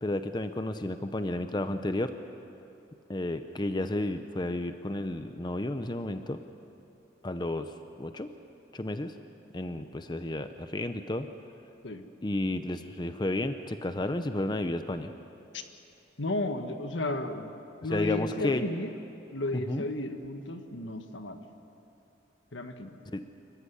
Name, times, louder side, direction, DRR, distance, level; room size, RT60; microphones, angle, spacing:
voice 1, 0.0-2.1 3.1-6.4 7.2-7.7 8.0-8.3 8.7-9.1 9.5-11.3 12.2-15.1 17.9-18.7 19.7-19.9 23.1-23.2, left 1 dB, 25° left, 9 dB, 0.7 m, -32 dB
voice 2, 16.2-17.5 17.8-18.9 19.3-21.4 22.5-22.9, left 2 dB, 80° left, 6 dB, 1.6 m, -33 dB
26.5 x 15.0 x 9.8 m, 2.8 s
head